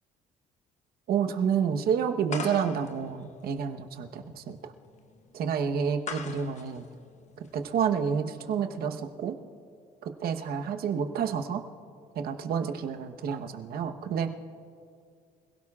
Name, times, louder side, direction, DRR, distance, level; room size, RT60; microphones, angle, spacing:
voice 1, 1.1-4.6 5.3-6.9 7.5-9.3 10.0-11.6 12.1-14.3, right 7 dB, 65° right, 6 dB, 1.1 m, -29 dB
sound 1, 2.3-7.9, left 5 dB, 45° left, 1.1 m, -42 dB
26.0 x 17.0 x 2.4 m, 2.3 s
cardioid pair, 110°, 17 cm